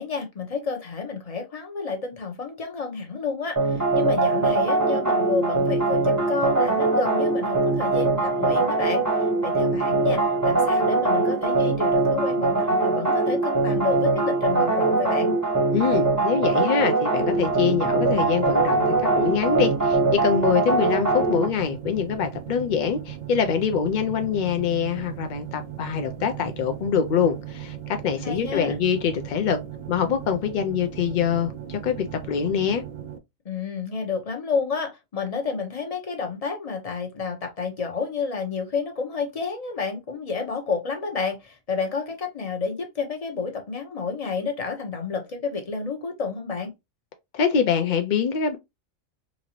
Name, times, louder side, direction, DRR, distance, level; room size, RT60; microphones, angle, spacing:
voice 1, 0.0-9.0 9.4-15.3 28.2-28.8 33.4-46.7, left 5 dB, 30° left, 0.8 m, -30 dB
sound 1, 3.6-21.5, right 3 dB, 15° right, 0.8 m, -22 dB
voice 2, 15.7-29.6 29.9-32.8 47.3-48.6, left 7 dB, 80° left, 0.4 m, -24 dB
sound 2, 17.2-33.2, right 10 dB, 80° right, 1.0 m, -37 dB
4.1 x 2.6 x 2.9 m
omnidirectional pair, 1.4 m